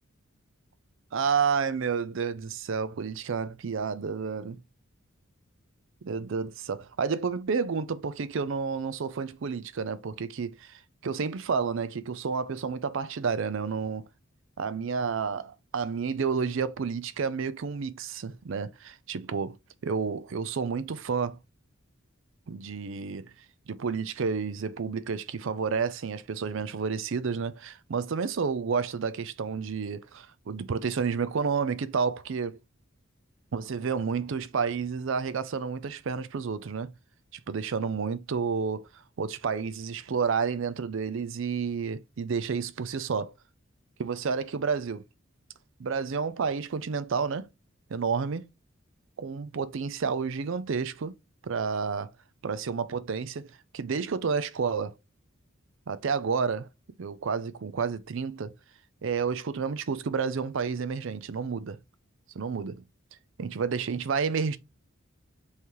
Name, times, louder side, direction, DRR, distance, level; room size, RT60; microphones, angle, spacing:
voice 1, 1.1-4.6 6.0-14.0 14.6-19.6 19.8-21.4 22.5-23.3 23.7-32.6 33.5-36.9 37.5-38.8 39.2-43.3 44.0-45.0 45.8-47.5 47.9-48.5 49.2-51.2 51.4-52.1 52.4-54.9 55.9-56.7 57.0-58.5 59.0-61.8 62.3-62.8 63.4-64.6, right 5 dB, 65° right, 0.5 m, -30 dB
5.5 x 3.2 x 3.0 m
head